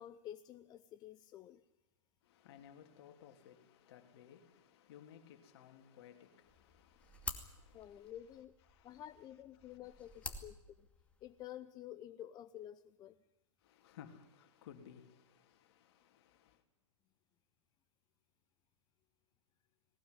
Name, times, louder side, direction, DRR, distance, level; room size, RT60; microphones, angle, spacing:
voice 1, 0.0-1.6 7.7-8.5 8.8-10.9 11.2-13.2, left 11 dB, 25° left, 0.7 m, -51 dB
voice 2, 2.2-8.2 8.7-9.0 9.6-10.4 13.6-16.6, left 9 dB, 50° left, 3.1 m, -59 dB
sound 1, 6.5-11.5, left 3 dB, 5° left, 2.4 m, -50 dB
19.5 x 19.0 x 9.7 m
hypercardioid pair, 115°, 17 cm